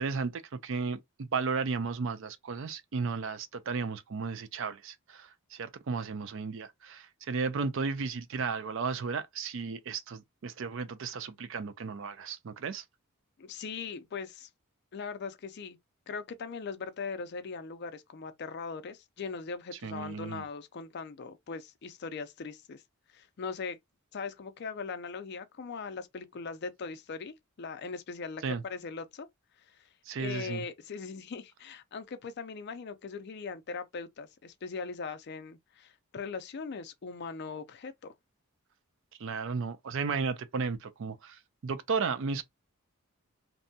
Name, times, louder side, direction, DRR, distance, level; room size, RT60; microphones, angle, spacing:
voice 1, 0.0-12.8 19.8-20.4 28.4-28.6 30.1-30.6 39.2-42.4, right 5 dB, 60° right, 0.4 m, -34 dB
voice 2, 13.4-14.5 14.9-15.8 16.1-22.8 23.1-23.8 24.1-29.3 29.8-29.9 30.2-38.1, left 5 dB, 50° left, 0.4 m, -40 dB
2.6 x 2.2 x 2.6 m
head